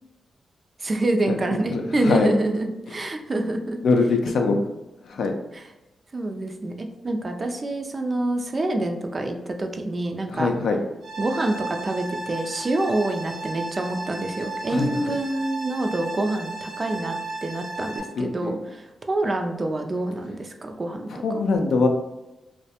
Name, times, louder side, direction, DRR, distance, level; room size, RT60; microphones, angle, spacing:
voice 1, 0.8-3.8 4.3-4.4 5.5-5.6 6.1-10.5 11.2-17.2 17.4-21.1 21.3-21.4, right 2 dB, 40° right, 4 dB, 0.3 m, -26 dB
voice 2, 1.7-2.3 3.8-4.6 5.0-5.3 10.3-10.8 14.7-15.1 18.2-18.6 21.1-21.9, left 4 dB, 80° left, 4 dB, 0.3 m, -23 dB
sound 1, 11.0-18.0, right 2 dB, 70° right, 0.9 m, -35 dB
2.3 x 2.1 x 2.7 m, 0.98 s
cardioid pair, 70°, 0 cm